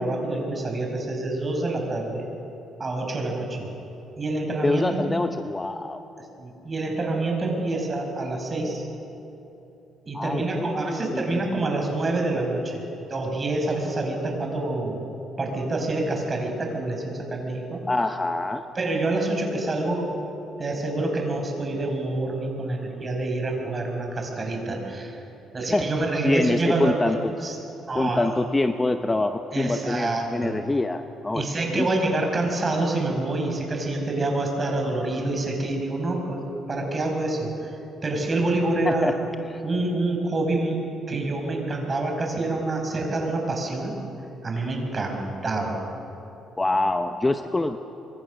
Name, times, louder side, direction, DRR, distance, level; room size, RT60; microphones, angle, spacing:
voice 1, 0.0-2.2 2.8-3.7 4.2-5.1 6.4-8.9 10.1-12.8 13.1-15.0 15.4-17.8 18.8-20.1 20.6-25.2 25.5-27.2 27.4-27.6 27.9-28.5 29.5-30.5 31.3-37.8 38.0-39.3 39.6-40.8 41.1-44.0 44.4-45.8, right 2 dB, 30° right, 2 dB, 5.5 m, -27 dB
voice 2, 4.6-6.0 10.1-11.8 17.9-18.6 25.7-25.9 26.2-27.3 27.9-31.9 38.8-39.1 39.5-39.6 46.6-47.8, left 2 dB, 15° left, 8 dB, 0.8 m, -25 dB
26.5 x 23.5 x 6.3 m, 3.0 s
cardioid pair, 110°, 0 cm